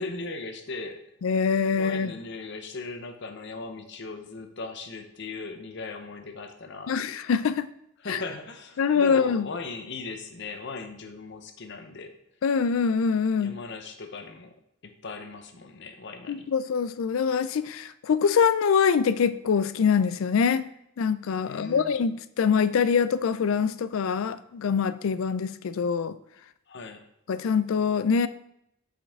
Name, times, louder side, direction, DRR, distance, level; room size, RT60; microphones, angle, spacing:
voice 1, 0.0-1.0 1.7-7.0 8.0-12.2 13.4-14.6 14.8-16.5 21.4-22.0 26.7-27.1, left 3 dB, 60° left, 7 dB, 0.8 m, -38 dB
voice 2, 1.2-2.1 6.9-7.7 8.1-8.2 8.8-9.5 12.4-13.6 16.3-20.7 21.0-26.2 27.3-28.3, left 6 dB, 75° left, 14 dB, 0.4 m, -24 dB
7.7 x 5.3 x 3.6 m, 0.77 s
head